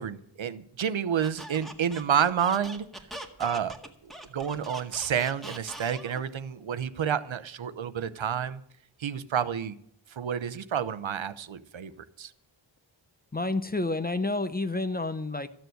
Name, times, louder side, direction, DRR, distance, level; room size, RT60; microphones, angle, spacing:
voice 1, 0.0-2.8 3.4-3.7 4.0-8.6 9.0-9.8 10.1-11.9 12.2-12.3, right 8 dB, 75° right, 13 dB, 0.8 m, -29 dB
Squeak, 1.2-6.3, right 1 dB, ahead, 1.7 m, -42 dB
voice 2, 13.3-15.5, left 2 dB, 20° left, 12 dB, 0.7 m, -29 dB
14.0 x 6.9 x 7.8 m, 0.67 s
wide cardioid pair, 65°, 48 cm